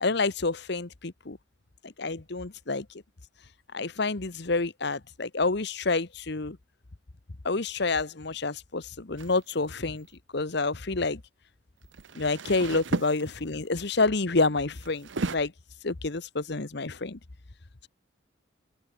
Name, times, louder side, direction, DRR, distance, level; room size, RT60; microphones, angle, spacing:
voice 1, 0.0-1.4 1.8-2.9 3.7-6.6 7.4-10.1 10.3-11.2 12.1-15.5 15.8-17.2, left 3 dB, 55° left, 1.1 m, -28 dB
sound 1, 9.2-9.4 11.8-13.7 14.8-15.4, right 3 dB, 70° right, 0.9 m, -33 dB
open air
head